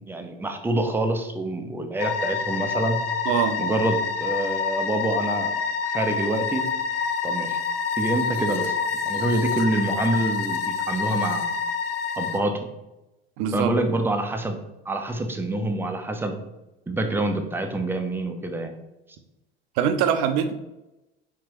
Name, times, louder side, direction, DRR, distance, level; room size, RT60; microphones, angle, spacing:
voice 1, 0.0-3.0 3.6-5.5 5.9-6.7 7.2-7.6 8.0-8.7 9.1-11.5 12.2-12.6 13.5-14.6 14.9-16.4 16.9-18.7, right 2 dB, 5° right, 5 dB, 0.6 m, -26 dB
sound 1, 2.0-12.4, left 5 dB, 70° left, 0.6 m, -27 dB
voice 2, 3.3-3.6 13.4-13.7 19.8-20.5, right 8 dB, 50° right, 8 dB, 0.6 m, -23 dB
4.6 x 3.7 x 3.0 m, 0.97 s
figure-of-eight pair, 70°, 30 cm